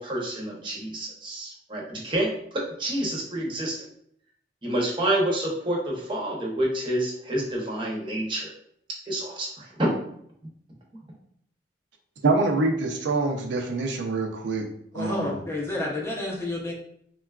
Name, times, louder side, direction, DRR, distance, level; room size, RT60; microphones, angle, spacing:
voice 1, 0.0-3.9 4.6-8.5 9.1-9.9, right 1 dB, 25° right, -2 dB, 0.6 m, -28 dB
voice 2, 12.2-14.7 14.9-15.4, right 3 dB, 80° right, 2 dB, 0.5 m, -25 dB
voice 3, 14.9-16.7, left 2 dB, 15° left, -2 dB, 0.5 m, -30 dB
3.7 x 2.2 x 2.3 m, 0.68 s
head